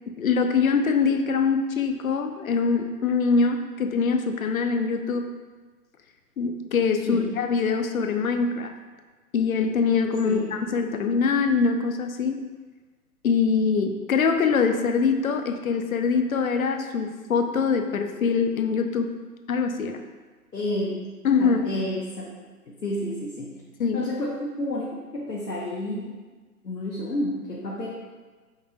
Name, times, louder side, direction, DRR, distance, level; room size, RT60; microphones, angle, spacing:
voice 1, 0.1-5.3 6.4-8.7 9.3-12.4 13.2-19.1 19.5-20.0 21.2-21.6 23.8-24.0, left 5 dB, 60° left, 6 dB, 0.5 m, -23 dB
voice 2, 20.5-21.1 21.4-22.3 22.7-23.6 23.9-26.2 26.6-27.9, left 1 dB, 90° left, -4 dB, 0.8 m, -30 dB
5.4 x 3.0 x 2.5 m, 1.4 s
figure-of-eight pair, 130°, 47 cm